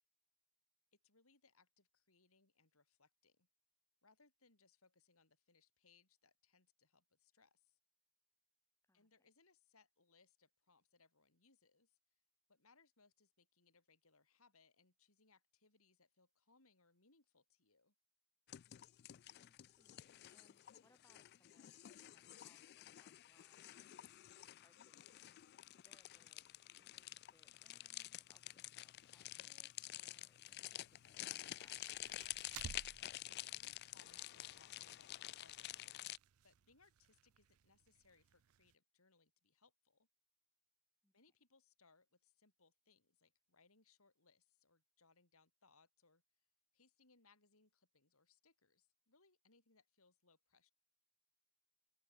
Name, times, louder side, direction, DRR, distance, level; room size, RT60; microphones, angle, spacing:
voice 1, 0.9-3.5 4.0-7.8 8.9-12.0 12.5-17.9 33.4-35.1 35.4-36.0 36.4-40.1 41.1-46.2 46.7-50.7, left 4 dB, 80° left, 4.6 m, -73 dB
voice 2, 8.8-9.3 19.2-25.3 25.7-32.0 41.0-41.1, left 2 dB, 15° left, 1.8 m, -77 dB
sound 1, 18.5-36.2, left 15 dB, 50° left, 0.3 m, -50 dB
sound 2, 30.7-38.7, right 7 dB, 80° right, 0.5 m, -59 dB
head